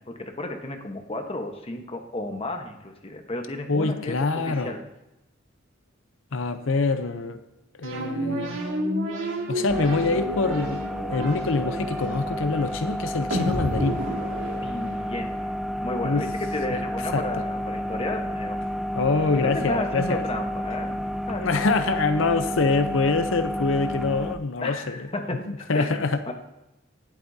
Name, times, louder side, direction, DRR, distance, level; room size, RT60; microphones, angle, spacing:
voice 1, 0.1-4.8 14.6-15.3 15.8-18.7 19.3-21.8 24.6-26.0 26.3-26.4, left 1 dB, 30° left, 4 dB, 1.2 m, -33 dB
voice 2, 3.7-4.7 6.3-7.4 7.8-8.6 9.5-10.8 11.1-14.0 16.0-16.3 16.7-16.8 17.1-17.2 19.0-20.2 21.4-25.1 25.5-26.2, left 3 dB, 90° left, 9 dB, 0.7 m, -25 dB
sound 1, 7.8-15.3, right 1 dB, 90° right, 2.2 m, -31 dB
sound 2, 9.7-24.4, equal, ahead, 0.4 m, -31 dB
19.0 x 8.2 x 2.8 m, 0.94 s
head